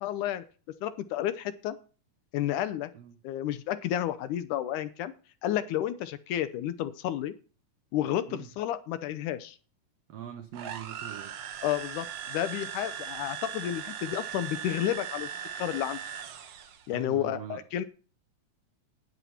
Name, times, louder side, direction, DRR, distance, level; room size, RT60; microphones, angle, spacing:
voice 1, 0.0-0.4 0.8-1.8 2.3-2.9 3.2-5.1 5.4-7.3 7.9-9.6 11.6-15.3 15.5-16.0 16.9-17.8, left 12 dB, 75° left, 12 dB, 2.0 m, -31 dB
voice 2, 10.1-11.3 16.9-17.6, right 10 dB, 90° right, 9 dB, 1.4 m, -42 dB
sound 1, 10.5-16.9, right 9 dB, 65° right, 1.8 m, -39 dB
11.0 x 9.5 x 4.3 m, 0.37 s
omnidirectional pair, 3.9 m